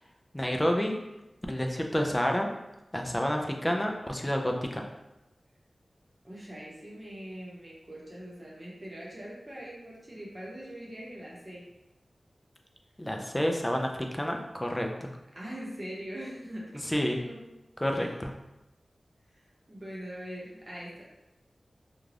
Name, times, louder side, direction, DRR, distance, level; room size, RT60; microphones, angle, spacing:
voice 1, 0.3-1.0 1.5-2.5 2.9-4.8 13.0-15.1 16.7-17.2 17.8-18.3, equal, 15° left, 2 dB, 0.4 m, -29 dB
voice 2, 6.2-11.7 15.3-17.4 17.9-18.1 19.4-21.0, equal, 30° right, -5 dB, 0.8 m, -42 dB
2.4 x 2.3 x 3.2 m, 0.96 s
wide cardioid pair, 75°, 0 cm